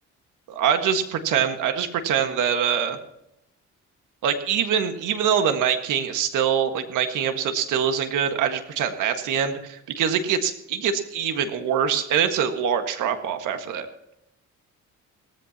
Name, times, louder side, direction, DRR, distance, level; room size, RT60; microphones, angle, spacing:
voice 1, 0.5-3.0 4.2-13.9, right 8 dB, 85° right, 7 dB, 1.7 m, -24 dB
18.0 x 14.5 x 2.9 m, 0.84 s
cardioid pair, 90°, 30 cm